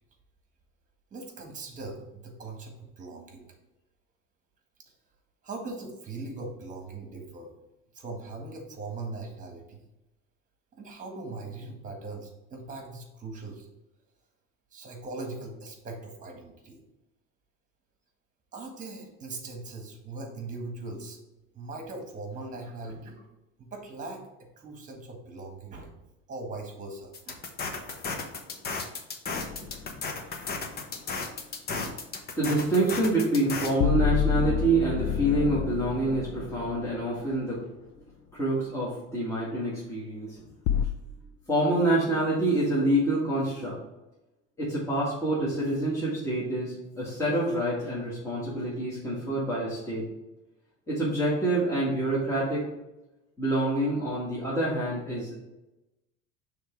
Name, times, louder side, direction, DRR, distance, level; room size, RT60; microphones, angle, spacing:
voice 1, 1.1-3.5 5.4-7.5 7.9-9.8 10.7-13.7 14.7-16.8 18.5-21.2 21.5-23.2 23.6-24.2 24.6-26.0 26.3-27.5, right 3 dB, 25° right, 2 dB, 1.6 m, -40 dB
sound 1, 27.1-33.7, left 4 dB, 35° left, 0.9 m, -34 dB
sound 2, 29.4-29.9 33.8-37.2 40.7-40.9, left 9 dB, 55° left, 0.5 m, -28 dB
voice 2, 32.4-37.6 38.3-40.3 41.5-43.7 44.6-50.0 50.9-52.6 53.4-55.4, right 1 dB, 10° left, -8 dB, 1.9 m, -27 dB
6.4 x 3.5 x 4.6 m, 0.97 s
cardioid pair, 130°, 30 cm